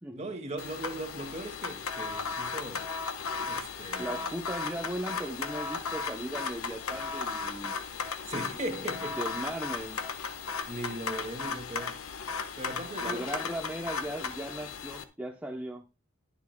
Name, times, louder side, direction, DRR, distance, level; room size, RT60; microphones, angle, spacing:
voice 1, 0.1-2.9 3.4-4.3 8.2-9.2 10.7-12.0 12.5-13.3, right 1 dB, 30° right, 1.9 m, -38 dB
sound 1, 0.6-15.0, left 5 dB, 75° left, 1.2 m, -36 dB
voice 2, 4.0-7.8 9.2-10.0 13.0-15.8, right 1 dB, 5° right, 0.8 m, -37 dB
20.0 x 7.3 x 2.2 m
head